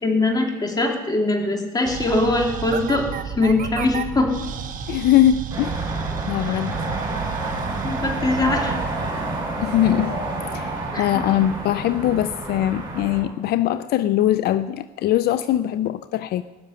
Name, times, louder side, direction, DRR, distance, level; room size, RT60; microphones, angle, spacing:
voice 1, 0.0-4.3 6.4-6.6 7.8-8.9 10.9-11.1, left 2 dB, 25° left, 2 dB, 2.8 m, -22 dB
sound 1, 1.8-10.4, right 8 dB, 55° right, 1.3 m, -33 dB
voice 2, 4.9-5.9 6.3-6.8 9.6-10.2 10.5-16.4, left 12 dB, 70° left, 14 dB, 0.5 m, -21 dB
sound 2, 5.5-13.2, right 2 dB, 25° right, 6.3 m, -29 dB
18.5 x 6.8 x 9.7 m, 1.2 s
cardioid pair, 110°, 17 cm